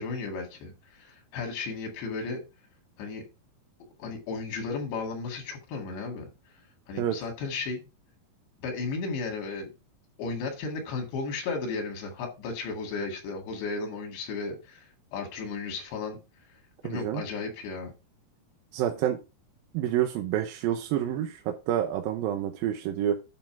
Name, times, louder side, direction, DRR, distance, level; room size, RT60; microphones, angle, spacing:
voice 1, 0.0-2.4 3.0-3.2 4.0-6.3 6.9-7.9 8.6-9.7 10.2-16.2 16.8-17.9, left 4 dB, 85° left, 4.4 m, -34 dB
voice 2, 16.8-17.2 18.7-19.2 19.7-23.2, right 11 dB, 75° right, 2.3 m, -28 dB
9.7 x 5.6 x 4.5 m
omnidirectional pair, 4.8 m